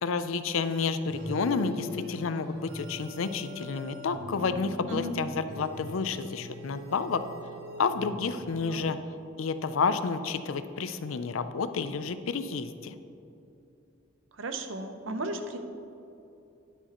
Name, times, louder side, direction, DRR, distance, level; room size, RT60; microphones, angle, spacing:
voice 1, 0.0-7.2 7.8-9.0 9.4-12.9, left 5 dB, 85° left, 11 dB, 0.5 m, -30 dB
sound 1, 1.1-8.5, left 1 dB, 50° right, 1.6 m, -42 dB
voice 2, 14.4-15.6, right 1 dB, 75° right, 7 dB, 0.8 m, -35 dB
10.0 x 9.9 x 3.0 m, 2.7 s
head